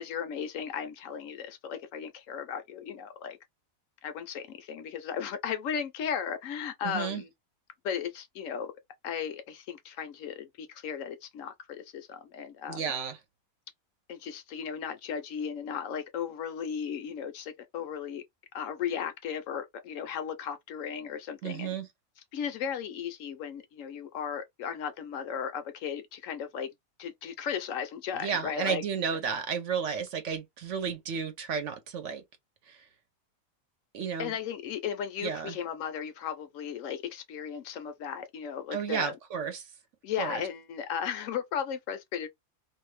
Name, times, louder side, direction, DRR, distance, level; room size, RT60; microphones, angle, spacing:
voice 1, 0.0-3.4 4.0-7.3 7.8-8.7 9.0-12.8 14.1-18.2 18.5-21.7 22.3-26.7 27.0-28.8 34.2-39.1 40.0-42.3, left 8 dB, 70° left, 0.9 m, -36 dB
voice 2, 6.8-7.2 12.7-13.2 21.4-21.9 28.1-32.2 32.7-32.8 33.9-34.3 35.2-35.6 38.7-39.7 40.2-40.4, right 6 dB, 65° right, 1.0 m, -32 dB
2.6 x 2.3 x 3.1 m
omnidirectional pair, 1.5 m